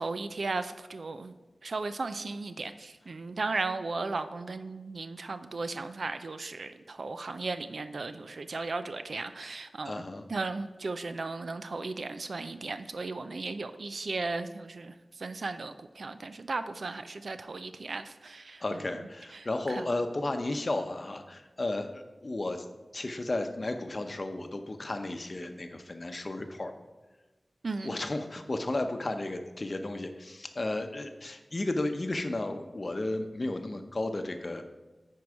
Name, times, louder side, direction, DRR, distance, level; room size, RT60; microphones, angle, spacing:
voice 1, 0.0-1.3 1.6-10.0 10.3-18.8 19.3-19.9 27.6-27.9, right 3 dB, 75° right, 10 dB, 0.5 m, -36 dB
voice 2, 9.8-10.2 18.6-22.7 22.9-26.7 27.8-34.6, left 2 dB, 50° left, 7 dB, 0.8 m, -33 dB
9.5 x 4.6 x 4.8 m, 1.2 s
wide cardioid pair, 55°, 0 cm